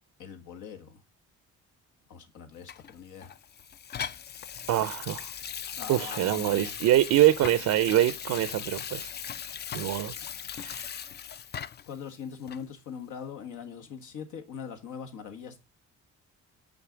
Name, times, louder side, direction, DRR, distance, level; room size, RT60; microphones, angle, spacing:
voice 1, 0.2-1.0 2.1-3.3 5.7-6.7 11.9-15.6, left 7 dB, 80° left, 1.3 m, -41 dB
Water tap faucet / Sink (filling or washing), 2.7-12.0 12.5-12.6, left 8 dB, 35° left, 0.4 m, -38 dB
voice 2, 4.7-5.3 5.9-9.1 9.7-10.1 10.5-10.9, right 13 dB, 70° right, 0.5 m, -24 dB
5.9 x 4.1 x 5.0 m
cardioid pair, 90°, 30 cm